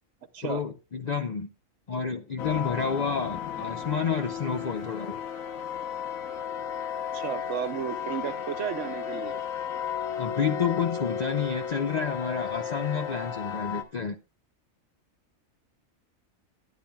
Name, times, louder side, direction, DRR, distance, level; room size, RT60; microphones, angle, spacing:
voice 1, 0.4-1.5 1.9-5.2 10.2-14.2, left 6 dB, 55° left, 0.4 m, -29 dB
sound 1, 2.4-13.8, left 8 dB, 85° left, 1.4 m, -34 dB
voice 2, 7.1-9.4, right 8 dB, 65° right, 1.0 m, -33 dB
13.0 x 9.9 x 2.3 m
omnidirectional pair, 1.4 m